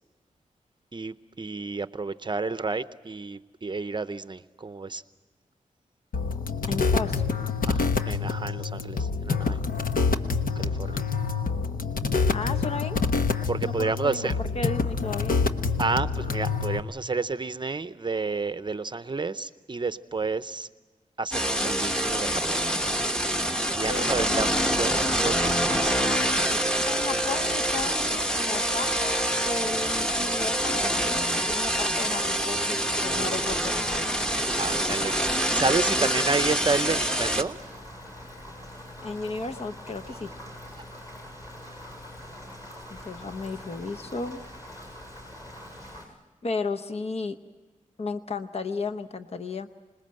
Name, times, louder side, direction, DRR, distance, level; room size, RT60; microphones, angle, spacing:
voice 1, 0.9-5.0 7.7-9.6 10.6-11.0 13.5-14.3 15.8-20.7 21.2-22.6 23.7-26.0 27.1-27.2 32.3-33.3 34.6-37.6, right 4 dB, 35° right, 13 dB, 0.6 m, -31 dB
sound 1, 6.1-16.8, left 4 dB, 90° left, 1.1 m, -27 dB
voice 2, 6.7-7.2 12.3-13.0 13.6-15.3 23.8-24.3 26.9-29.2 29.4-34.1 39.0-40.3 42.9-44.4 46.4-47.4 48.0-49.7, left 3 dB, 45° left, 8 dB, 0.9 m, -34 dB
sound 2, 21.3-37.4, equal, 5° left, 1.2 m, -26 dB
Rain, 32.9-46.1, left 1 dB, 25° left, 6.7 m, -44 dB
26.5 x 20.5 x 7.6 m, 1.3 s
wide cardioid pair, 120°, 14 cm